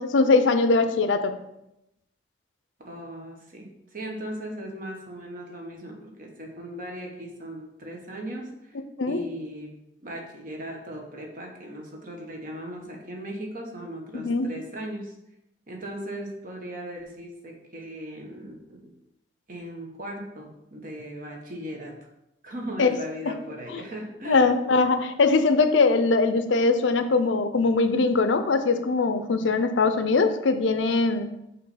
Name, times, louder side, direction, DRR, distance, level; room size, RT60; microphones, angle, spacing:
voice 1, 0.0-1.3 9.0-9.3 14.1-14.5 22.8-22.9 23.3-23.4 23.7-23.8 24.3-31.3, left 3 dB, 85° left, 10 dB, 0.5 m, -21 dB
voice 2, 2.8-9.7 10.0-15.1 15.7-18.9 19.5-22.0 22.4-24.5, right 1 dB, 50° right, 0 dB, 1.1 m, -38 dB
5.5 x 3.2 x 5.7 m, 0.86 s
head